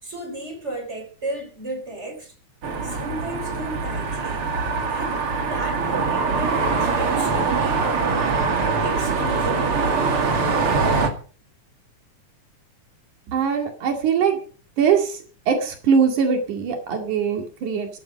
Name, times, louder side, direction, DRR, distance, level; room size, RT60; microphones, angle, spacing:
voice 1, 0.0-2.3 2.8-4.5 4.9-9.9, right 2 dB, 20° right, 4.4 m, -34 dB
sound 1, 2.6-11.1, right 4 dB, 50° right, 2.8 m, -23 dB
voice 2, 13.3-14.4 14.8-15.2 15.5-17.9, right 6 dB, 85° right, 3.7 m, -21 dB
15.5 x 12.0 x 5.2 m
omnidirectional pair, 3.4 m